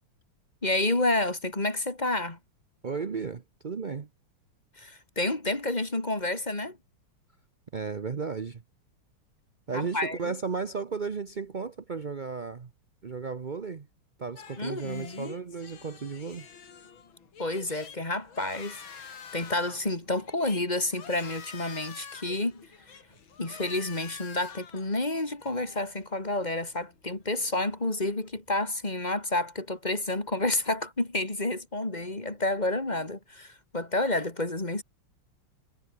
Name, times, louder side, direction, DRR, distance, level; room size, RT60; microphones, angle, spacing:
voice 1, 0.6-2.4 4.8-6.8 9.7-10.3 14.6-15.3 17.4-22.6 23.4-34.8, left 2 dB, 20° left, 3.0 m, -30 dB
voice 2, 2.8-4.1 7.7-8.6 9.7-12.7 13.0-13.9 14.2-16.5, right 5 dB, 60° right, 0.5 m, -34 dB
sound 1, 14.4-28.3, left 7 dB, 65° left, 2.9 m, -48 dB
omnidirectional pair, 2.4 m